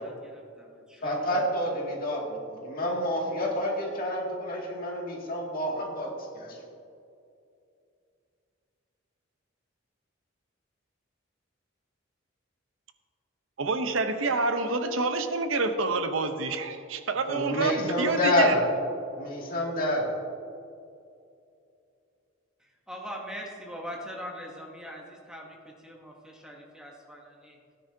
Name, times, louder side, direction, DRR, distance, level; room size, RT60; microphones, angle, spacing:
voice 1, 0.0-1.4 22.6-27.6, equal, 5° right, -1 dB, 1.0 m, -42 dB
voice 2, 1.0-6.1 6.3-6.6 17.3-18.7 19.2-20.1, left 1 dB, 50° left, -2 dB, 2.2 m, -28 dB
voice 3, 13.6-18.5, right 3 dB, 80° right, 8 dB, 0.8 m, -28 dB
16.0 x 9.5 x 2.7 m, 2.5 s
head